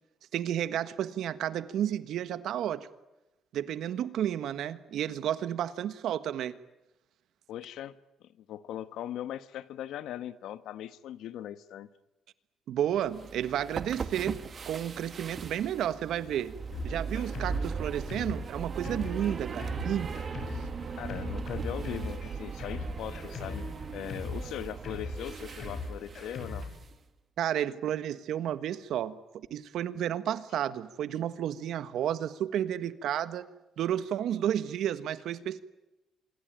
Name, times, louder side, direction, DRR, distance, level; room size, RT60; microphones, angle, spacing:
voice 1, 0.3-2.9 3.5-6.5 12.7-16.5 16.8-20.2 27.4-33.5 33.8-35.6, right 10 dB, 70° right, 1.5 m, -32 dB
voice 2, 7.5-11.9 21.0-26.7, left 11 dB, 80° left, 1.2 m, -40 dB
sound 1, 13.0-26.9, right 5 dB, 35° right, 1.8 m, -38 dB
Drum kit, 16.7-26.8, left 3 dB, 50° left, 7.7 m, -40 dB
26.0 x 22.0 x 9.1 m
cardioid pair, 145°, 0 cm